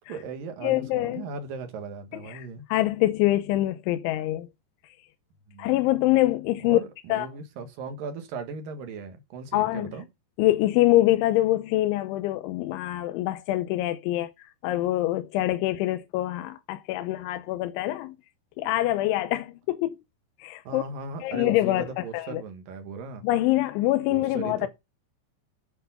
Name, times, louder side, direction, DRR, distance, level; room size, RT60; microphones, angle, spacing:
voice 1, 0.1-2.6 5.5-5.7 6.6-10.1 20.6-23.2 24.1-24.7, right 4 dB, 60° right, 2.6 m, -38 dB
voice 2, 0.6-1.3 2.3-4.5 5.6-6.8 7.1-7.3 9.5-9.9 10.4-18.2 18.6-20.0 20.4-20.8 21.2-22.4 23.2-24.7, left 16 dB, 85° left, 3.2 m, -25 dB
8.8 x 8.2 x 5.6 m
omnidirectional pair, 5.3 m